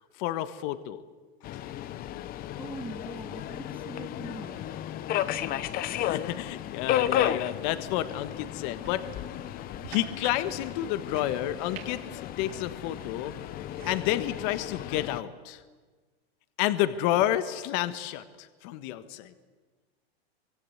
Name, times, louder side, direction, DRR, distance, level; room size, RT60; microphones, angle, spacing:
voice 1, 0.2-1.0 5.9-9.1 9.9-13.3 13.9-15.6 16.6-19.3, left 13 dB, 45° left, 11 dB, 1.4 m, -30 dB
Subway metro underground, 1.4-15.2, left 11 dB, 30° left, 0.9 m, -34 dB
voice 2, 2.6-4.7, right 2 dB, 5° right, 3 dB, 2.6 m, -42 dB
sound 1, 8.8-14.0, right 7 dB, 70° right, 6.5 m, -48 dB
24.5 x 23.0 x 8.0 m, 1.4 s
hypercardioid pair, 130°, 31 cm